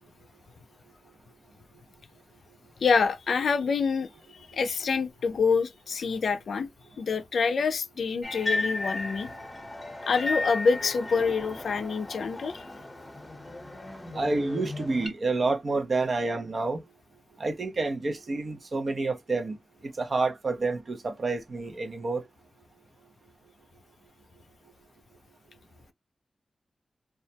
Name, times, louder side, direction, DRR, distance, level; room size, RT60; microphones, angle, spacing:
voice 1, 2.8-6.7 7.0-9.3 10.1-12.6, left 5 dB, 85° left, 0.3 m, -26 dB
sound 1, 8.2-15.1, left 2 dB, 25° left, 0.7 m, -35 dB
voice 2, 14.1-16.8 17.4-19.6 19.8-22.2, right 3 dB, 60° right, 0.6 m, -29 dB
2.3 x 2.1 x 2.7 m
cardioid pair, 55°, 0 cm